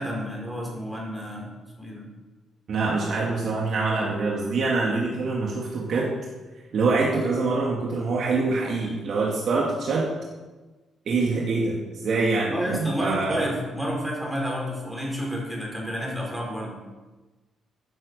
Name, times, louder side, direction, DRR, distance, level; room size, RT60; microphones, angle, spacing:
voice 1, 0.0-1.5 1.8-2.1 12.5-16.8, equal, 5° right, -2 dB, 4.6 m, -30 dB
voice 2, 2.7-6.1 6.7-10.1 11.1-13.5, right 3 dB, 55° right, -3 dB, 2.5 m, -25 dB
15.0 x 9.5 x 7.0 m, 1.2 s
cardioid pair, 130°, 0 cm